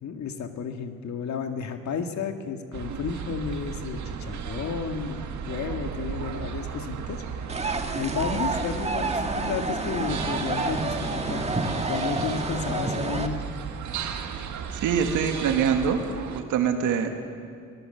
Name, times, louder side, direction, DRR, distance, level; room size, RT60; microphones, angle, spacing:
voice 1, 0.0-7.6 8.0-11.4 11.9-13.4, left 6 dB, 65° left, 6 dB, 2.0 m, -32 dB
sound 1, 2.7-16.4, right 7 dB, 70° right, 1.8 m, -35 dB
sound 2, 7.5-13.3, right 3 dB, 20° right, 1.8 m, -29 dB
voice 2, 14.8-16.0 16.3-17.1, right 7 dB, 85° right, 5 dB, 2.2 m, -24 dB
23.5 x 17.0 x 7.9 m, 2.4 s
cardioid pair, 90°, 30 cm